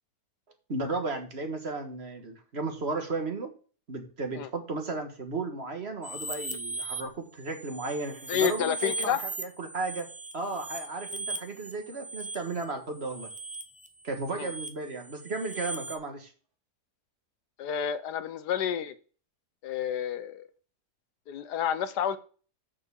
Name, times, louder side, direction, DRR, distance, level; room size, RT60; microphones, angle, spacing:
voice 1, 0.7-3.5 3.9-10.1 10.3-13.3 14.0-16.3, right 3 dB, 40° right, 5 dB, 1.7 m, -34 dB
sound 1, 6.0-7.0 7.5-16.0, right 2 dB, 10° right, 0.4 m, -38 dB
voice 2, 8.3-9.2 14.3-14.5 17.6-18.9 19.6-20.5 21.3-22.2, left 9 dB, 85° left, 13 dB, 1.4 m, -30 dB
6.7 x 5.8 x 7.0 m, 0.39 s
omnidirectional pair, 1.7 m